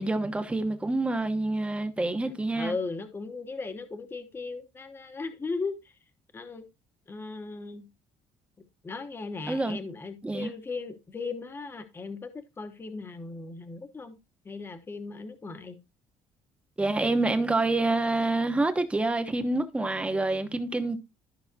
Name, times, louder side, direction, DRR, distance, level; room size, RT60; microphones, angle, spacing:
voice 1, 0.0-2.7 9.5-9.8 10.2-10.5 16.8-21.0, right 2 dB, 10° right, 1.0 m, -27 dB
voice 2, 2.2-5.9 6.3-6.6 7.1-7.9 8.8-14.2 14.4-15.8 16.9-17.4, left 4 dB, 20° left, 1.0 m, -37 dB
13.0 x 5.6 x 2.7 m
cardioid pair, 145°, 11 cm